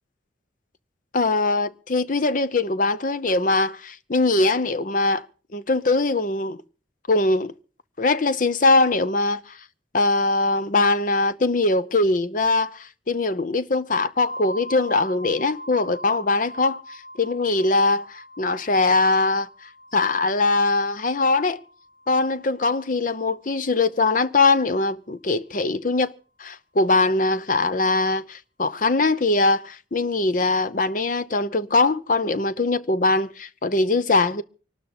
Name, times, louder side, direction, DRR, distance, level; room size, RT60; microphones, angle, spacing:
voice 1, 1.1-5.3 5.5-6.6 7.1-7.5 8.0-9.6 9.9-19.5 19.9-21.6 22.1-26.1 26.4-34.4, left 3 dB, 45° left, 0.7 m, -22 dB
sound 1, 14.3-23.9, equal, 15° left, 2.5 m, -43 dB
24.5 x 12.5 x 4.2 m
head